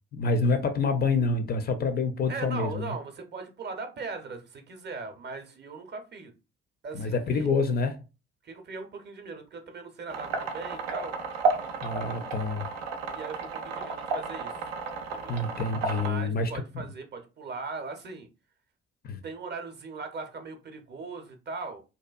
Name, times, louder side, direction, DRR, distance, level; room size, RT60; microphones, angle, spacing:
voice 1, 0.1-2.9 6.9-8.0 11.8-12.7 15.3-16.5 19.0-19.2, left 3 dB, 35° left, 0.4 m, -27 dB
voice 2, 2.3-6.3 6.8-7.5 8.4-11.1 13.1-14.7 15.1-15.4 15.9-18.3 19.2-21.8, right 4 dB, 35° right, 0.7 m, -39 dB
sound 1, 10.1-16.1, right 4 dB, 80° right, 0.5 m, -32 dB
2.6 x 2.2 x 2.3 m
figure-of-eight pair, 45°, 30 cm